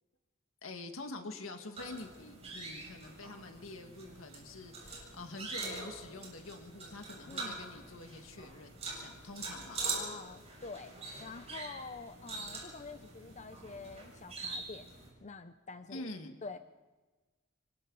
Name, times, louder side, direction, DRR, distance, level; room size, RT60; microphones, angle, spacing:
voice 1, 0.6-9.9 15.9-16.4, left 2 dB, 85° left, 5 dB, 1.9 m, -46 dB
sound 1, 1.8-15.1, right 3 dB, 35° right, 7.6 m, -44 dB
voice 2, 7.3-7.6 9.8-10.9 11.2-14.9 15.2-16.1 16.4-16.6, left 4 dB, 35° left, 9 dB, 0.7 m, -47 dB
27.5 x 23.5 x 4.1 m, 1.3 s
head